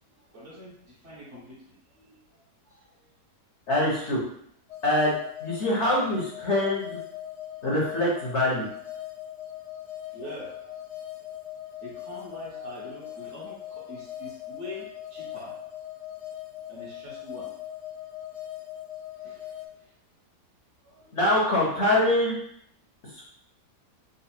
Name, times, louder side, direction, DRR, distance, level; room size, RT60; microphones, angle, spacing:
voice 1, 0.3-1.6 1.9-2.1 2.7-2.9 10.1-10.7 11.8-15.5 16.7-17.5 19.2-19.5 20.8-21.2, left 1 dB, 50° right, -6 dB, 1.4 m, -43 dB
voice 2, 3.7-4.2 4.8-7.0 7.6-8.7 21.1-22.4 23.2-23.3, left 1 dB, 50° left, -4 dB, 1.0 m, -24 dB
sound 1, 4.7-19.7, left 12 dB, 80° left, 1.4 m, -40 dB
3.9 x 2.2 x 4.3 m, 0.69 s
omnidirectional pair, 1.7 m